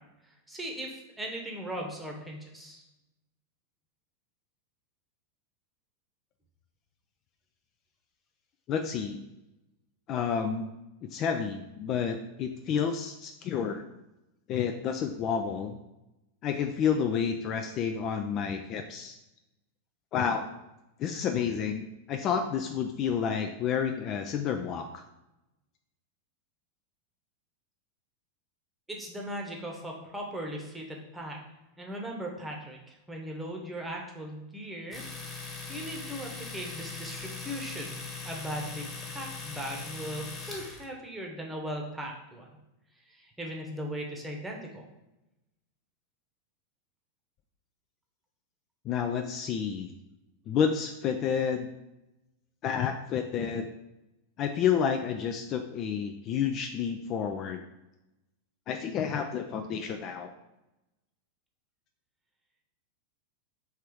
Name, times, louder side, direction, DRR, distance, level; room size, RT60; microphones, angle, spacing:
voice 1, 0.5-2.8 28.9-31.4 31.8-38.0 38.2-42.5 43.1-44.9, equal, 10° right, 0 dB, 0.9 m, -38 dB
voice 2, 8.7-9.2 10.1-10.7 11.1-13.9 14.5-15.8 16.4-19.2 20.1-20.4 21.0-25.0 48.9-49.9 50.5-51.7 52.6-53.7 54.4-57.6 58.7-60.3, left 7 dB, 35° left, 5 dB, 0.3 m, -30 dB
Domestic sounds home sounds, 34.9-40.8, left 4 dB, 10° left, 1.1 m, -40 dB
3.4 x 3.4 x 4.5 m, 0.94 s
figure-of-eight pair, 90°, 0 cm